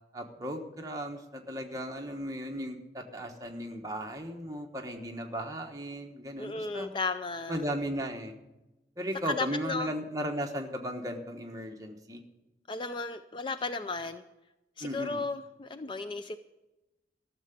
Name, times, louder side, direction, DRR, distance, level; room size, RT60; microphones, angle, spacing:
voice 1, 0.1-6.9 7.5-8.3 9.0-12.2 14.8-15.2, equal, 20° right, 2 dB, 1.2 m, -36 dB
voice 2, 6.4-7.6 9.2-9.9 12.7-14.2 14.8-16.4, left 3 dB, 25° left, 10 dB, 0.4 m, -34 dB
13.5 x 6.8 x 9.3 m, 1.0 s
head